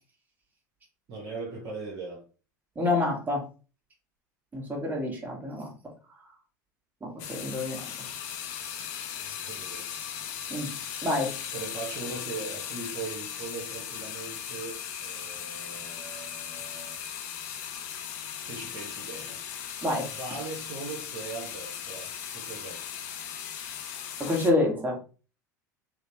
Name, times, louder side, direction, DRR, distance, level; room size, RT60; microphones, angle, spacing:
voice 1, 1.1-2.2 9.4-9.9 11.5-17.0 18.4-19.4 20.0-22.8, right 4 dB, 45° right, 1.0 m, -40 dB
voice 2, 2.7-3.4 4.5-5.7 7.0-7.8 10.5-10.7 11.0-11.3 19.8-20.2 24.2-25.0, left 2 dB, 15° right, 1.3 m, -27 dB
sound 1, 7.2-24.5, left 9 dB, 60° left, 0.5 m, -38 dB
2.9 x 2.1 x 2.7 m
figure-of-eight pair, 75°, 10 cm